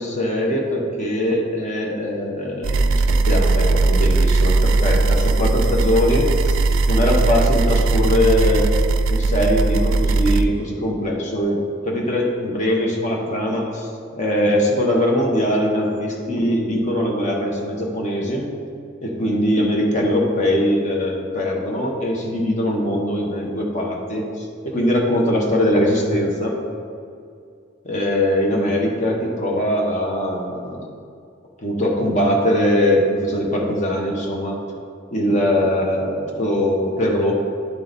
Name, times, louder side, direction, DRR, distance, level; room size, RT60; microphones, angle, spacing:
voice 1, 0.0-6.5 6.9-8.7 9.1-13.9 14.1-18.5 19.0-26.6 27.8-30.9 31.6-34.6 35.1-37.3, left 1 dB, 35° left, -1 dB, 1.0 m, -21 dB
sound 1, 2.6-10.4, right 3 dB, 70° right, 0.4 m, -18 dB
11.0 x 3.8 x 3.9 m, 2.4 s
head